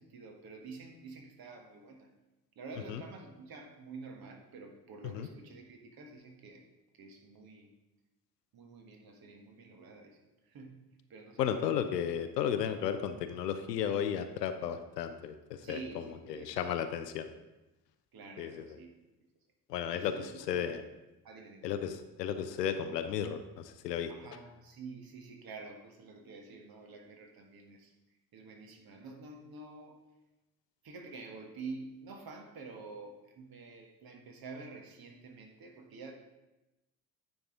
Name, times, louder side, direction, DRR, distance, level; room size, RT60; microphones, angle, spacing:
voice 1, 0.0-2.1 2.5-6.6 6.9-7.7 8.5-10.2 10.4-11.4 15.6-16.8 17.4-17.5 18.1-19.1 19.9-20.9 21.2-21.7 24.1-27.9 28.3-30.0 30.8-36.1, right 3 dB, 50° right, 3 dB, 1.5 m, -48 dB
voice 2, 11.4-17.3 18.4-18.8 19.7-20.8 21.6-24.1, left 8 dB, 85° left, 9 dB, 0.6 m, -34 dB
9.5 x 5.3 x 3.8 m, 1.0 s
figure-of-eight pair, 45°, 47 cm